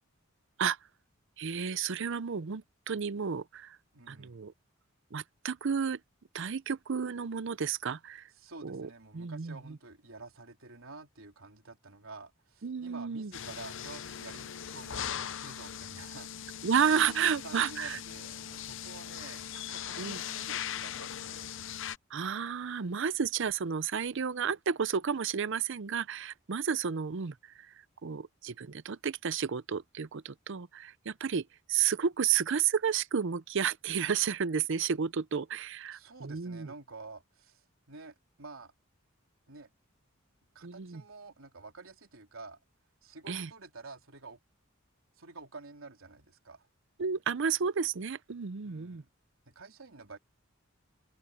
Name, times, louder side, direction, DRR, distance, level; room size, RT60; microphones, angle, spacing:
voice 1, 1.4-3.8 4.1-4.5 5.1-6.0 6.3-8.2 8.6-9.8 12.6-13.3 16.6-18.0 20.0-20.2 22.1-27.3 28.0-36.7 40.6-41.0 43.3-43.5 47.0-49.0, right 7 dB, 65° right, 0.6 m, -32 dB
voice 2, 3.9-4.4 8.3-16.7 17.0-21.5 35.9-38.7 39.5-39.7 40.5-42.6 43.0-44.4 45.2-46.7 48.6-49.1 49.4-50.2, right 3 dB, 80° right, 3.6 m, -49 dB
sound 1, 13.3-22.0, left 9 dB, 65° left, 0.7 m, -40 dB
head